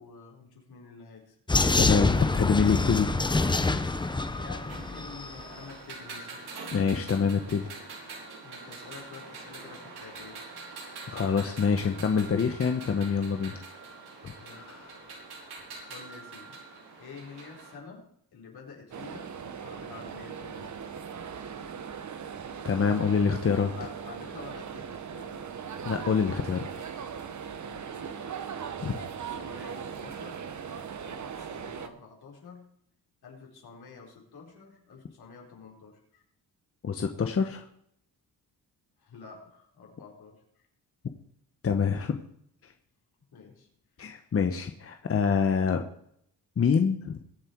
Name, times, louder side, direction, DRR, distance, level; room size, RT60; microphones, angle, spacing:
voice 1, 0.0-1.4 4.2-6.5 8.4-10.5 11.8-12.0 14.4-14.8 15.9-16.6 17.0-20.8 23.8-25.5 27.6-28.3 28.9-30.5 31.0-32.7 33.2-36.2 39.0-40.7 43.3-43.7 44.0-44.3, left 5 dB, 70° left, 0 dB, 4.6 m, -49 dB
Vehicle, 1.5-5.4, left 3 dB, 10° left, 0.7 m, -26 dB
voice 2, 1.8-3.1 6.7-7.7 11.1-13.5 14.2-14.9 22.6-23.7 25.8-26.7 28.8-28.9 36.8-37.6 41.6-42.2 44.0-45.8 46.6-47.2, left 6 dB, 35° left, 6 dB, 1.1 m, -26 dB
sound 1, 2.9-17.7, right 3 dB, 80° right, 5.1 m, -45 dB
sound 2, 18.9-31.9, right 7 dB, 50° right, 1.3 m, -39 dB
22.5 x 7.7 x 4.6 m, 0.70 s
cardioid pair, 120°, 38 cm